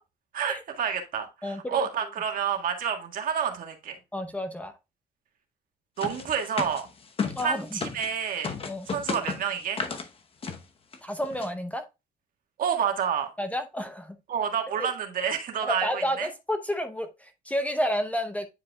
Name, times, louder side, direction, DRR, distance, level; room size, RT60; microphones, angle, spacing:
voice 1, 0.3-4.0 6.0-6.9 7.4-8.5 8.9-9.8 12.6-13.3 14.3-16.3, right 7 dB, 55° right, 1.7 m, -29 dB
voice 2, 1.4-1.9 4.1-4.7 7.4-7.8 8.7-8.9 11.0-11.8 13.4-14.2 14.8-14.9 15.6-18.5, equal, 10° left, 0.7 m, -30 dB
sound 1, 6.0-8.1 8.4-10.1 10.4-10.6 10.9-11.0 11.2-11.5, left 5 dB, 35° left, 0.9 m, -33 dB
9.6 x 4.8 x 2.3 m
cardioid pair, 110°, 17 cm